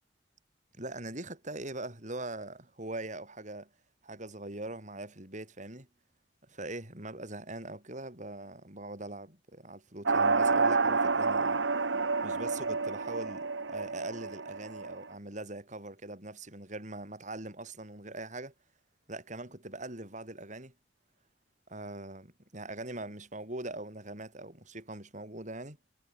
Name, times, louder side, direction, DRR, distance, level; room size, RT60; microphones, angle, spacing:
voice 1, 0.8-3.7 4.0-5.9 6.5-11.6 12.2-18.5 19.1-20.7 21.7-25.8, right 2 dB, 40° right, 6.8 m, -42 dB
sound 1, 10.1-15.0, right 4 dB, 90° right, 1.5 m, -29 dB
head